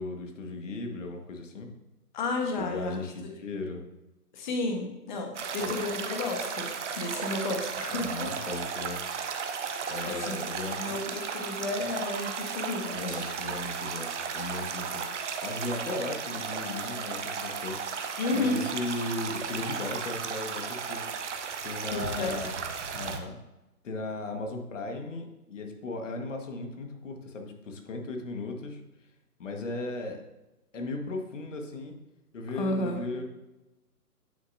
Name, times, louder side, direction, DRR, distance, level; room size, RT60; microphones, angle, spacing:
voice 1, 0.0-1.7 2.6-3.8 5.6-5.8 8.0-9.0 9.9-10.9 12.9-17.8 18.3-21.0 21.6-22.6 22.9-23.3 23.8-28.8 29.4-30.2 30.7-31.9 32.3-33.2, left 2 dB, 50° left, 3 dB, 1.7 m, -36 dB
voice 2, 2.1-3.0 4.3-8.3 10.0-13.3 18.2-18.6 21.9-22.4 32.5-33.0, left 2 dB, 30° left, 2 dB, 1.3 m, -32 dB
sound 1, 5.3-23.2, right 6 dB, 50° right, 0.9 m, -35 dB
9.3 x 6.7 x 2.7 m, 1.0 s
hypercardioid pair, 150°, 47 cm